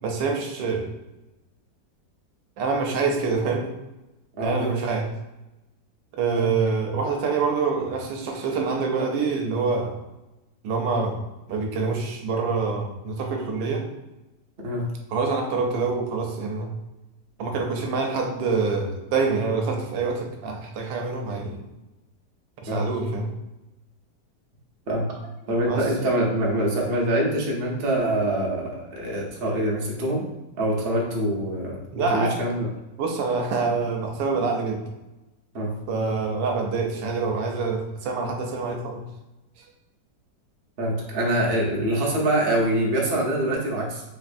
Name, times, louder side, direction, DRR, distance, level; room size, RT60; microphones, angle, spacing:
voice 1, 0.0-0.9 2.6-3.7 4.4-5.1 6.2-10.0 10.6-11.2 11.5-13.9 15.1-16.7 17.4-21.6 22.6-23.3 25.6-25.8 31.9-32.4 33.0-34.8 35.9-39.0 39.6-39.7, right 4 dB, 90° right, 3 dB, 1.4 m, -26 dB
voice 2, 4.4-4.7 6.4-6.5 14.6-14.8 22.7-22.8 24.9-25.0 25.5-30.2 30.6-32.7 35.5-35.7 40.8-44.0, right 1 dB, 45° right, -2 dB, 0.8 m, -24 dB
4.3 x 3.0 x 2.5 m, 1.0 s
omnidirectional pair, 1.9 m